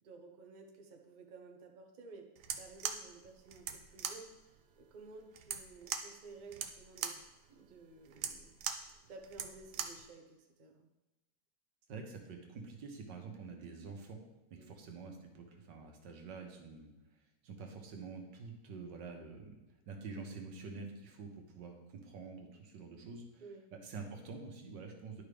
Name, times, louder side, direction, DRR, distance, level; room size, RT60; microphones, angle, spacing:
voice 1, 0.0-2.3 2.6-7.2 7.5-8.6 9.1-10.9 14.6-14.8 23.4-23.7, right 4 dB, 40° right, 3 dB, 0.7 m, -54 dB
sound 1, 2.4-10.1, right 7 dB, 65° right, 0.8 m, -42 dB
voice 2, 11.9-14.2 14.5-16.9 17.4-19.6 19.9-23.4 23.7-25.2, right 4 dB, 90° right, 3 dB, 1.8 m, -47 dB
11.5 x 5.0 x 3.4 m, 1.0 s
omnidirectional pair, 1.9 m